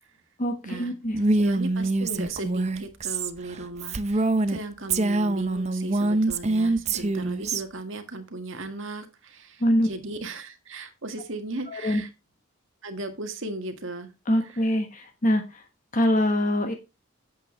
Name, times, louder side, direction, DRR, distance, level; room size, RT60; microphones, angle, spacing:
voice 1, 0.4-1.2 9.6-9.9 11.7-12.0 14.3-15.6 15.9-16.7, equal, 35° left, 5 dB, 1.3 m, -24 dB
Female speech woman speaking, 1.1-4.6 4.9-7.6, right 2 dB, 30° right, 0.6 m, -25 dB
voice 2, 1.3-12.1 12.8-14.1 14.4-14.7, right 2 dB, 65° right, 6 dB, 1.8 m, -37 dB
9.0 x 8.0 x 3.3 m, 0.26 s
head